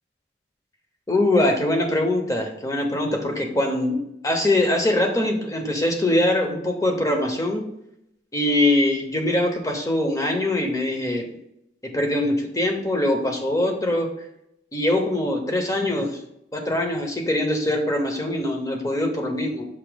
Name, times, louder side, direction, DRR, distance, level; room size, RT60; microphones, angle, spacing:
voice 1, 1.1-4.0 4.2-7.6 8.3-11.3 11.9-14.1 14.7-16.2 16.5-19.7, left 1 dB, 20° left, 2 dB, 0.9 m, -22 dB
7.3 x 2.8 x 5.1 m, 0.78 s
head